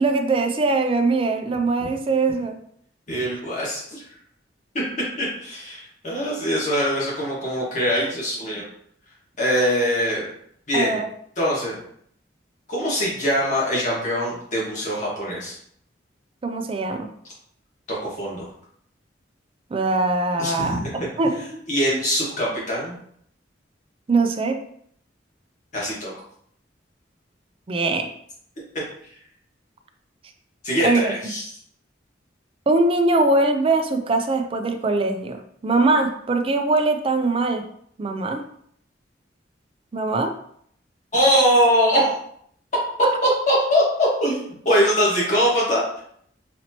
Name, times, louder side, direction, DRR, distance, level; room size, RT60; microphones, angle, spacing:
voice 1, 0.0-2.6 10.7-11.1 16.4-17.1 19.7-20.8 21.2-21.3 24.1-24.6 27.7-28.1 30.8-31.1 32.7-35.4 35.6-37.6 38.0-38.4 39.9-40.3, right 3 dB, 30° right, 6 dB, 0.4 m, -21 dB
voice 2, 3.1-4.0 5.2-8.6 9.4-10.3 10.7-11.0 11.4-11.8 12.7-15.6 17.9-18.4 20.4-20.9 21.7-22.9 25.7-26.1 30.6-31.5 41.1-42.2 43.2-45.8, equal, 45° left, -6 dB, 1.5 m, -22 dB
4.1 x 2.9 x 2.8 m, 0.66 s
head